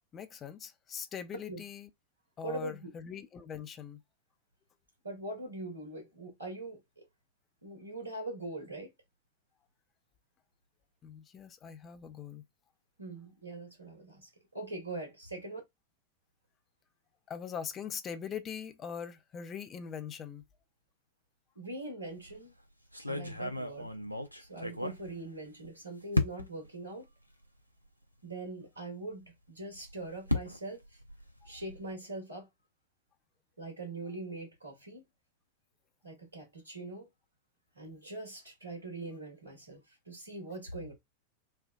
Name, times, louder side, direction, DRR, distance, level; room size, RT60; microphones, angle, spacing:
voice 1, 0.1-1.9 2.4-4.0 11.0-12.4 17.3-20.4, left 7 dB, 25° left, 0.4 m, -42 dB
voice 2, 2.4-2.9 5.0-7.0 7.6-8.9 13.0-15.6 21.5-22.5 23.1-23.9 24.4-27.1 28.2-30.8 31.4-32.5 33.6-35.0 36.0-37.1 37.7-40.9, right 2 dB, 80° right, 1.4 m, -42 dB
sound 1, 22.1-22.4 22.9-25.7 26.1-26.7 27.4-27.5 27.9-28.0 29.6-31.9, left 2 dB, 90° left, 0.4 m, -35 dB
3.3 x 2.2 x 2.3 m
figure-of-eight pair, 90°, 0 cm